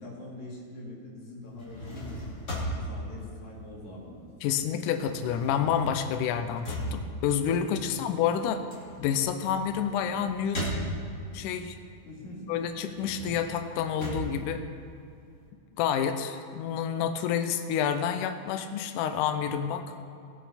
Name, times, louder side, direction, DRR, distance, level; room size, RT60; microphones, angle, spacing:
voice 1, 0.0-2.2 2.7-4.9 6.8-7.1 7.9-8.1 12.1-12.6, left 1 dB, 55° left, -4 dB, 3.6 m, -44 dB
sound 1, 1.5-4.3 4.6-11.4 11.8-15.4, equal, 30° left, 2.7 m, -38 dB
voice 2, 4.4-8.6 9.0-10.7 11.3-11.8 12.5-14.6 15.8-19.8, left 8 dB, 90° left, 7 dB, 1.8 m, -29 dB
18.5 x 7.2 x 4.2 m, 2.5 s
omnidirectional pair, 4.4 m